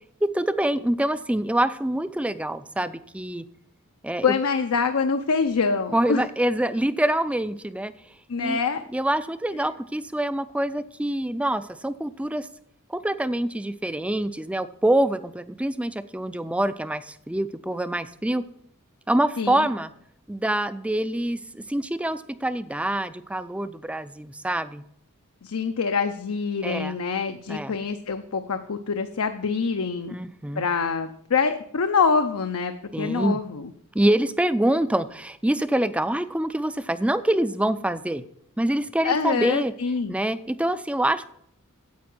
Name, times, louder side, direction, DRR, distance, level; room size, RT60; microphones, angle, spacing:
voice 1, 0.2-3.5 4.0-4.3 5.9-7.9 8.4-8.6 8.9-12.5 12.9-18.4 19.1-19.9 20.3-24.8 26.6-27.0 27.5-27.7 30.1-30.6 32.9-33.4 33.9-38.2 38.6-39.7 40.1-41.3, right 1 dB, 5° right, 13 dB, 0.4 m, -25 dB
voice 2, 4.2-6.2 8.3-8.8 19.4-19.7 25.4-30.1 30.6-32.7 33.0-33.7 39.0-40.1, left 5 dB, 75° left, 7 dB, 0.6 m, -25 dB
9.5 x 8.1 x 6.0 m, 0.69 s
head